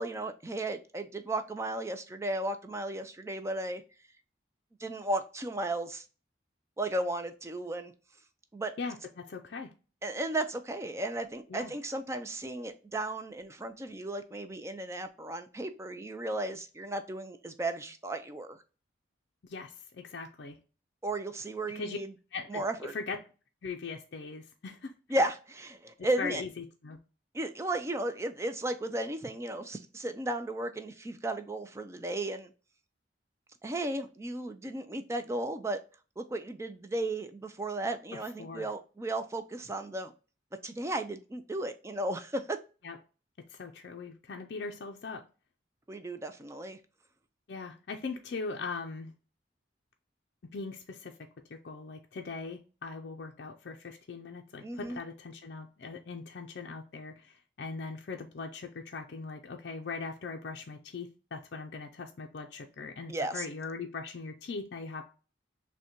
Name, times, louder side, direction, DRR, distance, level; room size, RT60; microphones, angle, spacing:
voice 1, 0.0-3.8 4.8-6.0 6.8-7.9 8.5-8.7 10.0-18.6 21.0-22.1 22.5-22.9 25.1-26.4 27.3-32.5 33.6-35.8 36.2-40.1 40.6-42.6 45.9-46.8 54.6-55.0 63.1-63.5, right 1 dB, 15° right, 0.3 m, -34 dB
voice 2, 8.8-9.7 11.5-11.7 19.5-20.6 21.7-22.0 22.3-23.2 23.6-24.9 26.2-27.0 38.4-38.7 42.8-43.0 43.5-45.2 47.5-49.1 50.5-65.0, left 4 dB, 60° left, 0.4 m, -40 dB
6.1 x 2.2 x 2.8 m
head